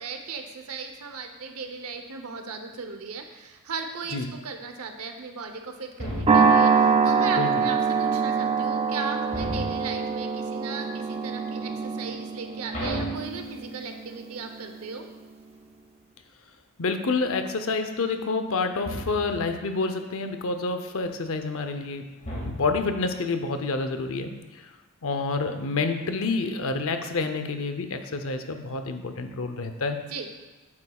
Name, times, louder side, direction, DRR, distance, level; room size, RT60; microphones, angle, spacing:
voice 1, 0.0-15.1 30.1-30.3, right 4 dB, 75° right, 5 dB, 0.8 m, -37 dB
sound 1, 6.0-6.7 9.3-10.1 12.7-13.9 18.8-19.5 22.2-23.0, equal, 35° left, 1.9 m, -34 dB
sound 2, 6.3-14.8, right 5 dB, 25° right, 0.5 m, -24 dB
voice 2, 16.8-22.1 22.4-24.3 25.0-30.0, left 3 dB, 65° left, 7 dB, 0.6 m, -28 dB
8.6 x 8.5 x 2.3 m, 1.2 s
head